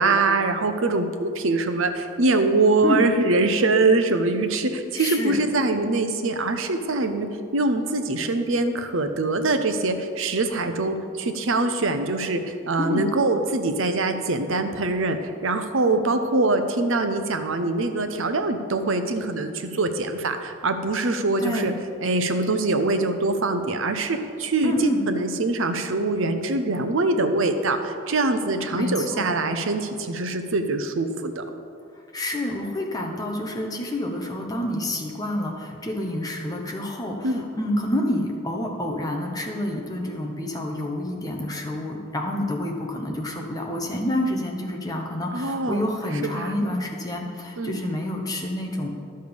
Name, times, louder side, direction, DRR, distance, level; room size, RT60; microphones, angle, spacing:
voice 1, 0.0-7.3 7.5-15.2 15.4-21.7 22.0-31.4 37.2-37.4 45.3-45.9 46.2-46.5 47.6-47.8, right 2 dB, 70° right, 7 dB, 0.7 m, -23 dB
voice 2, 4.9-5.4 12.8-13.1 21.4-21.8 24.6-25.0 28.7-29.3 32.1-48.9, left 1 dB, 15° left, 0 dB, 1.0 m, -28 dB
11.5 x 6.6 x 5.2 m, 2.4 s
head